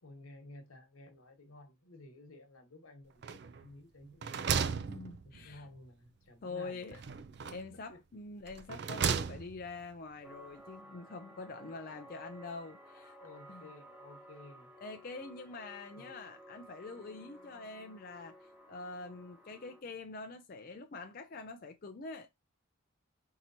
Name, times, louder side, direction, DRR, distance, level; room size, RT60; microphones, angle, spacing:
voice 1, 0.0-4.5 5.2-7.0 7.9-8.0 10.8-10.9 13.2-14.7 16.0-16.1, left 2 dB, 85° left, 1.2 m, -54 dB
sound 1, 3.2-3.7 4.0-5.6 6.9-7.8 8.5-9.7, right 6 dB, 50° right, 0.4 m, -35 dB
voice 2, 4.9-5.6 6.4-7.0 7.5-13.2 13.5-13.7 14.8-22.4, left 3 dB, 45° left, 0.4 m, -45 dB
sound 2, 10.2-19.8, equal, 10° right, 0.8 m, -55 dB
4.6 x 2.9 x 2.7 m
head